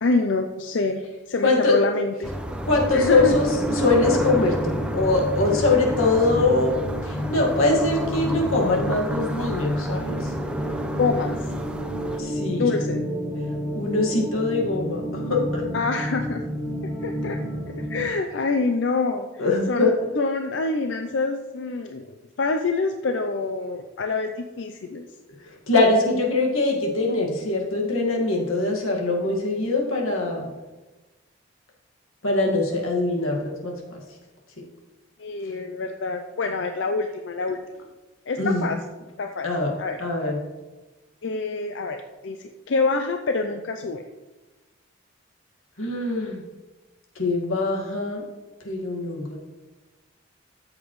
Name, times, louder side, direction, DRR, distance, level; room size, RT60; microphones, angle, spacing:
voice 1, 0.0-2.3 2.9-3.3 11.0-11.4 12.6-13.0 15.7-16.4 17.0-17.4 17.8-19.9 20.2-22.1 22.4-25.1 35.2-37.6 38.3-38.8 39.2-39.5 39.8-40.0 41.2-42.0 42.2-44.0, left 3 dB, 60° left, 5 dB, 0.5 m, -26 dB
voice 2, 1.4-1.7 2.6-6.8 7.0-10.3 12.2-12.7 13.7-15.6 19.4-19.9 25.7-30.5 32.2-34.0 34.6-34.7 38.4-38.6 39.4-39.7 40.0-40.4 45.8-46.4 47.1-48.2 48.6-49.4, left 2 dB, 90° left, -1 dB, 1.8 m, -23 dB
sound 1, 2.2-12.2, equal, 5° right, 0.5 m, -30 dB
sound 2, 3.2-18.1, equal, 15° left, 3.3 m, -31 dB
13.5 x 7.3 x 3.1 m, 1.2 s
head